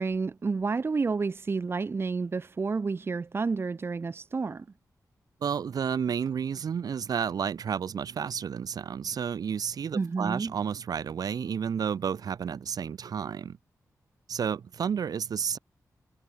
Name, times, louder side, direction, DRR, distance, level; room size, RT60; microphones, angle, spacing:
voice 1, 0.0-4.6 9.9-10.5, right 4 dB, 40° right, 1.3 m, -30 dB
voice 2, 5.4-13.6 14.3-15.6, right 7 dB, 80° right, 4.1 m, -31 dB
wide cardioid pair, 125°, 6 cm